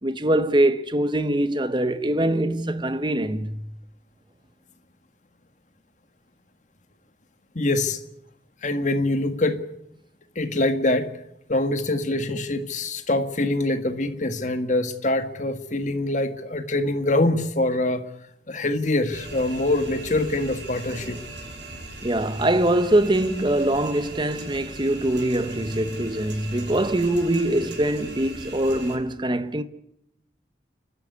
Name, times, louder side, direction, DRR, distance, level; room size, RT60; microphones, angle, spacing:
voice 1, 0.0-3.7 22.0-29.6, right 1 dB, 25° right, 1.1 m, -23 dB
voice 2, 7.5-8.0 8.6-9.7 10.3-11.1 11.5-18.1 18.5-21.2, left 2 dB, 45° left, 1.8 m, -24 dB
sound 1, 19.1-29.0, right 2 dB, 85° right, 5.9 m, -39 dB
29.0 x 12.5 x 9.6 m
head